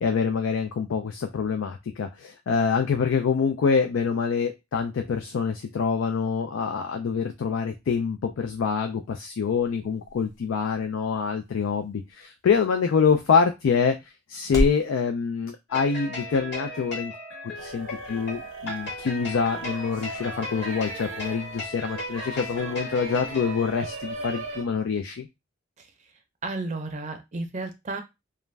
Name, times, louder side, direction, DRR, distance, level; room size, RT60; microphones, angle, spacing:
voice 1, 0.0-14.0 14.3-17.1 17.6-25.3, left 6 dB, 90° left, 6 dB, 0.4 m, -25 dB
sound 1, 8.6-14.9, equal, 20° left, 0.7 m, -36 dB
sound 2, 15.7-24.1, left 1 dB, 55° left, 1.3 m, -37 dB
sound 3, 17.6-24.6, right 3 dB, 85° right, 0.6 m, -39 dB
voice 2, 26.4-28.0, right 3 dB, 35° right, 6 dB, 0.5 m, -32 dB
2.4 x 2.1 x 3.2 m, 0.22 s
head